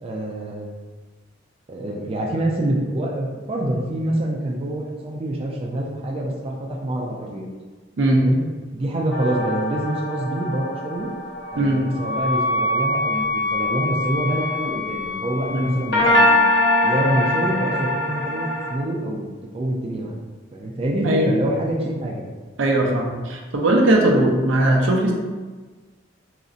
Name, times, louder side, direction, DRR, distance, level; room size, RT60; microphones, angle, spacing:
voice 1, 0.0-0.8 1.7-6.5 6.8-7.5 8.1-8.4 8.7-11.1 11.5-16.4 16.8-19.3 19.5-20.1 20.5-22.3, right 1 dB, 30° right, -2 dB, 0.3 m, -26 dB
sound 1, 9.1-12.6 15.9-18.8, left 1 dB, 65° left, 0.7 m, -22 dB
Wind instrument woodwind instrument, 11.3-16.1, left 2 dB, 30° left, 0.6 m, -26 dB
voice 2, 22.6-25.1, right 1 dB, 80° right, 0 dB, 0.5 m, -19 dB
3.8 x 2.0 x 2.5 m, 1.3 s
head